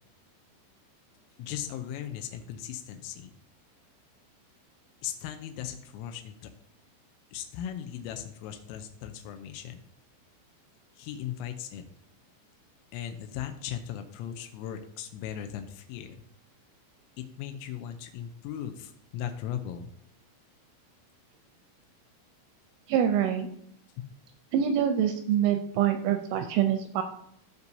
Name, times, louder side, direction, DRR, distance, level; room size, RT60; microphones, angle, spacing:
voice 1, 1.4-3.3 5.0-6.5 7.3-9.8 11.0-11.8 12.9-16.2 17.2-19.9, left 10 dB, 85° left, 6 dB, 3.3 m, -38 dB
voice 2, 22.9-23.5 24.5-27.0, right 9 dB, 85° right, 6 dB, 2.7 m, -25 dB
14.5 x 5.4 x 2.7 m, 0.72 s
omnidirectional pair, 5.8 m